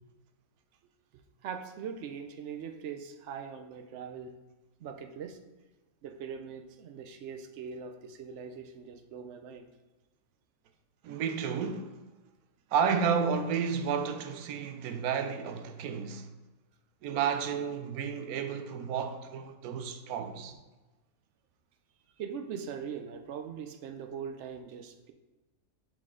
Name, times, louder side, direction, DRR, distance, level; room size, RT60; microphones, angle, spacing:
voice 1, 1.4-4.3 4.8-5.4 6.0-9.7 22.2-25.1, right 7 dB, 65° right, 0.8 m, -41 dB
voice 2, 11.0-12.0 12.7-16.3 17.0-20.6, right 6 dB, 90° right, 1.1 m, -31 dB
7.4 x 4.1 x 3.7 m
omnidirectional pair, 1.5 m